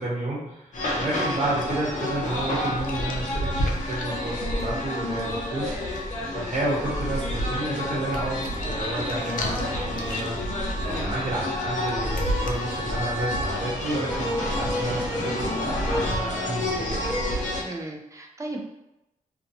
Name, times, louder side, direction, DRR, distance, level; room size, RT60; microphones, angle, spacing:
voice 1, 0.0-6.1 6.3-10.5 10.8-17.0, right 1 dB, 60° right, -7 dB, 1.2 m, -31 dB
sound 1, 0.7-17.6, left 1 dB, 60° left, 0.8 m, -29 dB
sound 2, 0.9-1.0 1.3-5.1 5.5-5.6 5.8-6.2 6.5-7.1 7.7-12.7, left 3 dB, 85° left, 0.4 m, -42 dB
sound 3, 3.3-13.5, left 1 dB, 20° left, 1.2 m, -42 dB
voice 2, 10.8-11.1 17.6-18.6, right 2 dB, 20° right, 1 dB, 0.4 m, -35 dB
2.5 x 2.2 x 2.7 m, 0.89 s
wide cardioid pair, 150°, 14 cm